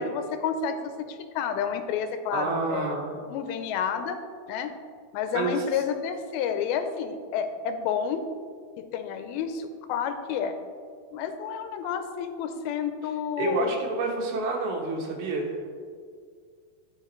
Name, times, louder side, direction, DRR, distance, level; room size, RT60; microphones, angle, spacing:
voice 1, 0.0-3.0 3.3-4.2 4.5-4.7 5.1-8.2 8.9-10.6 11.1-13.8, left 7 dB, 80° left, 8 dB, 2.4 m, -30 dB
voice 2, 2.3-3.1 5.3-5.6 13.4-15.6, right 3 dB, 80° right, 0 dB, 3.0 m, -28 dB
14.5 x 5.1 x 3.1 m, 2.1 s
omnidirectional pair, 4.4 m